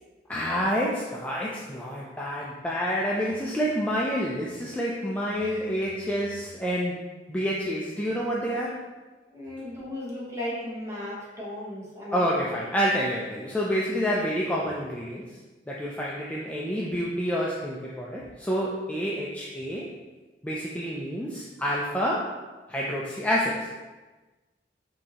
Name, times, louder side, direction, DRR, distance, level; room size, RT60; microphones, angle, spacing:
voice 1, 0.3-8.8 12.1-15.2 15.7-19.9 20.4-22.4 22.7-23.8, equal, 10° left, -4 dB, 0.3 m, -28 dB
voice 2, 9.3-12.4, left 1 dB, 20° right, -6 dB, 1.2 m, -36 dB
5.2 x 2.8 x 2.8 m, 1.2 s
head